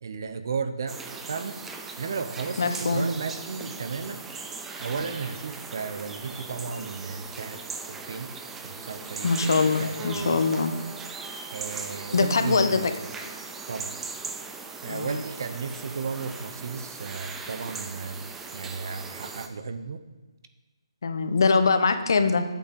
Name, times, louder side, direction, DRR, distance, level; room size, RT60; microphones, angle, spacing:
voice 1, 0.0-1.0 1.3-1.6 2.0-4.3 4.8-8.3 8.6-10.4 11.5-12.9 13.7-13.9 14.8-20.0, right 5 dB, 40° right, 10 dB, 0.7 m, -34 dB
sound 1, 0.9-19.5, right 4 dB, 5° right, 0.3 m, -39 dB
voice 2, 2.6-3.1 9.2-10.7 12.1-12.8 14.9-15.1 21.0-22.4, left 4 dB, 45° left, 8 dB, 1.0 m, -23 dB
8.5 x 6.4 x 7.5 m, 1.2 s
hypercardioid pair, 175°, 3 cm